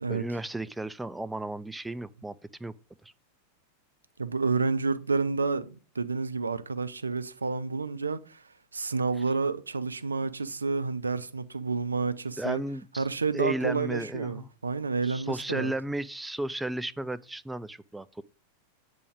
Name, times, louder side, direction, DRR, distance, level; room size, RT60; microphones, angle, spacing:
voice 1, 0.1-2.7 3.0-3.1 12.4-13.0 13.3-14.5 15.0-18.2, right 1 dB, 5° right, 0.3 m, -34 dB
voice 2, 4.2-8.4 8.7-12.6 13.0-15.7, right 4 dB, 75° right, 0.4 m, -30 dB
8.3 x 3.5 x 5.1 m
figure-of-eight pair, 90°, 0 cm